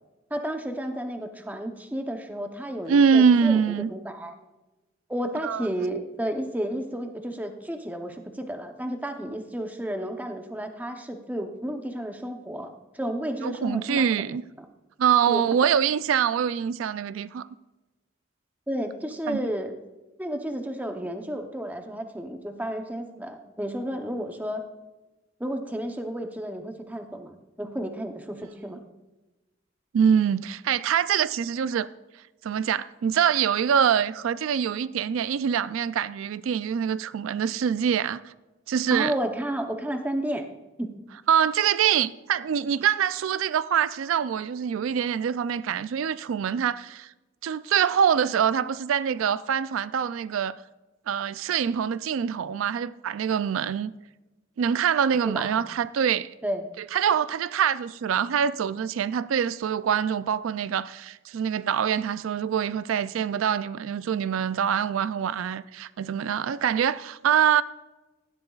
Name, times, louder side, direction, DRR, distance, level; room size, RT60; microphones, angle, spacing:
voice 1, 0.3-3.6 3.9-4.3 5.1-14.3 14.6-14.7 15.3-15.4 18.7-19.7 20.2-24.6 25.4-28.8 38.9-40.4 40.8-40.9 55.2-55.7 56.4-56.7, equal, 10° right, 0.8 m, -32 dB
voice 2, 2.9-3.9 5.4-5.7 13.4-14.4 15.0-17.4 19.3-19.5 29.9-31.9 32.4-38.3 38.7-39.1 41.3-47.1 47.4-50.6 51.1-53.9 54.6-56.3 56.9-67.6, right 8 dB, 80° right, 0.3 m, -24 dB
16.5 x 11.5 x 2.4 m
head